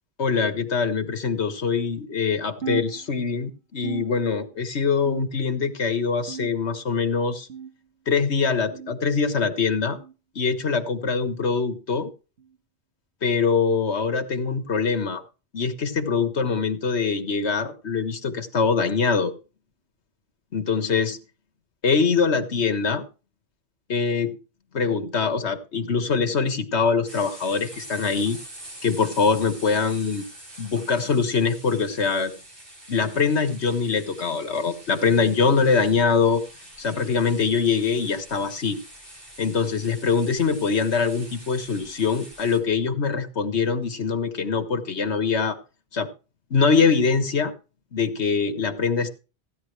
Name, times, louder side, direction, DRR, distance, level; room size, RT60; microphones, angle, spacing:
voice 1, 0.2-7.5 8.1-10.0 10.4-12.1 13.2-15.2 15.5-19.3 20.5-21.2 21.8-23.1 23.9-24.4 24.7-28.4 28.8-30.2 30.6-32.3 32.9-36.4 36.8-38.8 39.4-45.6 45.9-46.1 46.5-47.5 47.9-49.1, left 5 dB, 80° left, 1.8 m, -23 dB
sound 1, 2.6-3.5 3.8-4.6 5.1-5.7 6.3-6.9 7.5-7.9 8.7-9.0 9.9-10.2 11.2-11.4 12.4-12.6 13.6-13.8 14.8-15.0 16.0-16.1 17.3-17.4, right 7 dB, 75° right, 1.8 m, -37 dB
sound 2, 27.1-42.6, right 1 dB, 55° right, 4.7 m, -45 dB
15.5 x 10.0 x 3.3 m
omnidirectional pair, 1.1 m